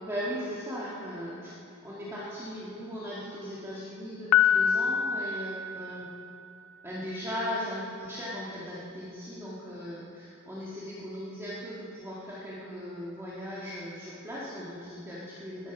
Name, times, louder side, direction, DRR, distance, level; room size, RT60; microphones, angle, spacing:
voice 1, 0.0-1.6 1.8-6.1 6.8-15.7, equal, 10° right, -8 dB, 1.9 m, -38 dB
Piano, 4.3-6.4, left 8 dB, 75° left, 0.4 m, -26 dB
21.0 x 9.0 x 6.0 m, 2.6 s
head